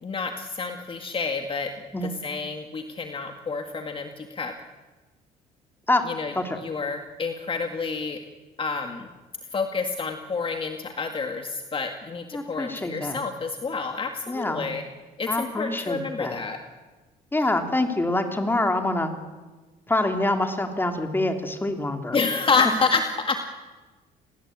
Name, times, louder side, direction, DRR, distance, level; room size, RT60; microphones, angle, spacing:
voice 1, 0.0-1.7 2.0-4.5 6.1-8.2 8.6-9.1 9.5-14.8 15.2-16.6 22.1-23.4, left 4 dB, 30° left, 5 dB, 2.1 m, -28 dB
voice 2, 12.3-13.2 14.3-14.7 15.3-16.4 17.3-19.1 19.9-22.2, left 2 dB, 10° left, 5 dB, 3.4 m, -26 dB
29.0 x 20.0 x 8.9 m, 1.3 s
cardioid pair, 110°, 17 cm